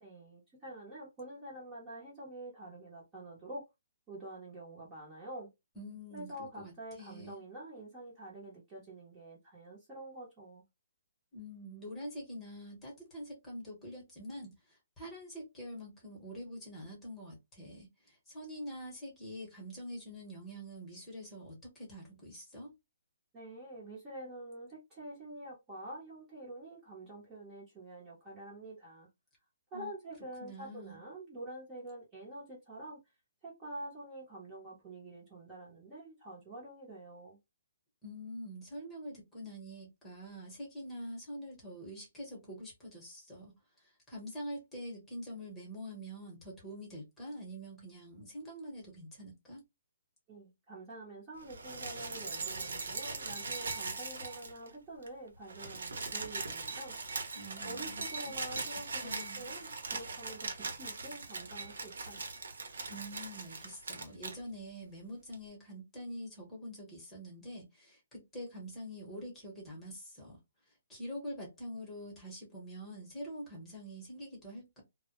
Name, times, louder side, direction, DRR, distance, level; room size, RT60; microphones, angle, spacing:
voice 1, 0.0-3.7 4.1-5.5 6.1-10.6 23.3-29.1 29.7-33.0 33.4-37.4 50.3-57.0 57.6-62.3, right 1 dB, 15° right, 0.8 m, -47 dB
voice 2, 5.7-7.4 11.3-22.7 29.7-29.9 30.4-31.0 38.0-49.6 57.3-58.6 59.0-59.4 62.9-70.4 70.9-74.8, equal, 10° left, 1.0 m, -45 dB
sound 1, 51.4-54.7 55.0-55.1 55.4-64.4 65.3-65.4, right 4 dB, 85° right, 0.7 m, -40 dB
2.1 x 2.1 x 2.9 m
hypercardioid pair, 165°, 0 cm